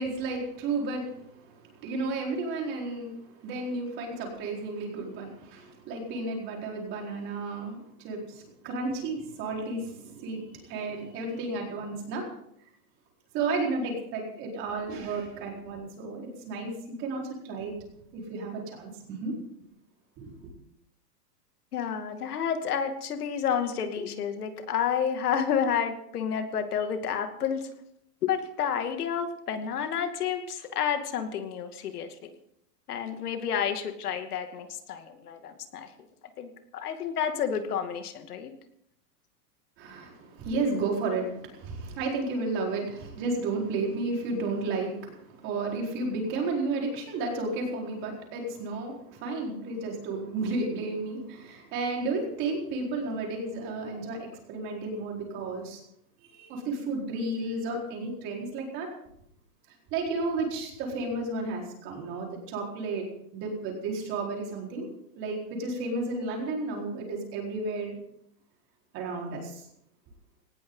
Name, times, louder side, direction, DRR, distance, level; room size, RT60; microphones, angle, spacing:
voice 1, 0.0-12.3 13.3-16.7 17.0-17.7 18.1-19.3 20.2-20.4 39.8-55.8 56.2-58.9 59.9-63.0 63.3-64.9 65.1-68.0 68.9-69.6, right 3 dB, 25° right, 0 dB, 4.5 m, -32 dB
voice 2, 21.7-27.7 28.2-32.3 32.9-35.9 36.4-38.5, left 8 dB, 65° left, 6 dB, 2.5 m, -30 dB
19.0 x 18.5 x 3.9 m, 0.73 s
supercardioid pair, 170°, 48 cm